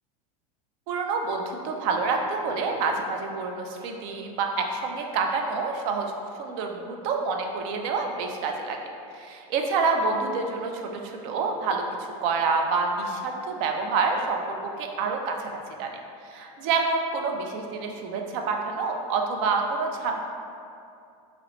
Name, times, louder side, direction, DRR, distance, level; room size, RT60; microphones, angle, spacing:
voice 1, 0.9-8.8 9.1-15.9 16.3-20.1, right 4 dB, 45° right, 3 dB, 0.4 m, -28 dB
2.9 x 2.8 x 3.0 m, 2.5 s
supercardioid pair, 155°, 18 cm